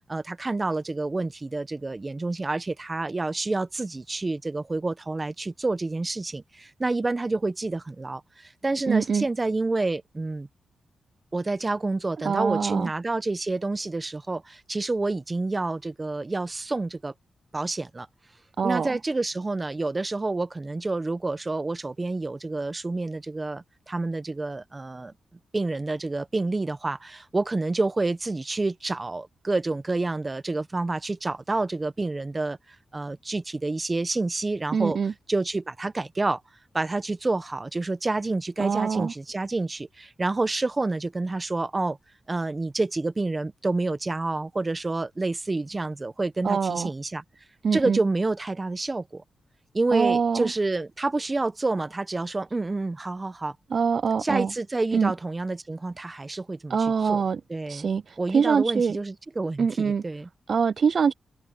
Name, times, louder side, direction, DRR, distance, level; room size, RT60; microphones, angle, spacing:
voice 1, 0.1-10.5 11.3-17.1 17.5-18.1 18.6-25.1 25.5-32.6 32.9-35.0 35.3-36.4 36.7-42.0 42.3-47.2 47.7-49.2 49.7-53.5 54.2-56.8 57.1-57.2 57.5-57.9 58.2-60.3, right 2 dB, 25° right, 1.1 m, -28 dB
voice 2, 8.9-9.3 12.2-12.9 18.6-19.0 34.7-35.1 38.6-39.1 46.4-46.9 47.6-48.0 49.9-50.5 53.7-54.5 54.9-55.1 56.7-57.4 57.7-59.0 59.6-60.0 60.5-61.1, right 6 dB, 55° right, 0.3 m, -24 dB
cardioid pair, 80°, 0 cm